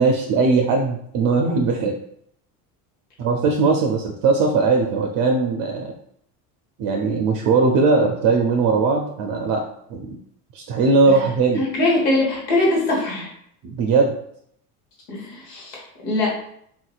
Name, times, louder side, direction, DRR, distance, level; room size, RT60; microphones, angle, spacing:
voice 1, 0.0-2.0 3.2-5.9 6.8-10.2 10.5-11.6 13.6-14.1, right 4 dB, 45° right, 2 dB, 0.5 m, -19 dB
voice 2, 11.6-13.3 15.1-16.3, left 2 dB, 75° left, -3 dB, 1.3 m, -22 dB
3.7 x 2.7 x 2.4 m, 0.70 s
hypercardioid pair, 80°, 47 cm